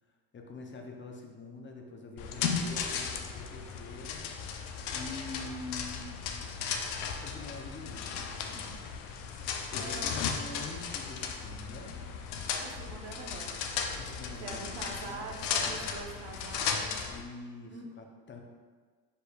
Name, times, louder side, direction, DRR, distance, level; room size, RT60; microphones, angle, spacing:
voice 1, 0.3-4.3 4.9-6.2 7.2-8.8 9.7-12.1 14.0-15.4 17.1-18.4, left 3 dB, 25° left, 2 dB, 0.7 m, -45 dB
sound 1, 2.2-17.2, left 6 dB, 75° left, 0.6 m, -36 dB
voice 2, 9.8-10.3 12.6-13.5 14.3-16.9 17.7-17.8, right 4 dB, 60° right, 1 dB, 1.0 m, -44 dB
4.9 x 4.6 x 2.3 m, 1.5 s
supercardioid pair, 75°, 45 cm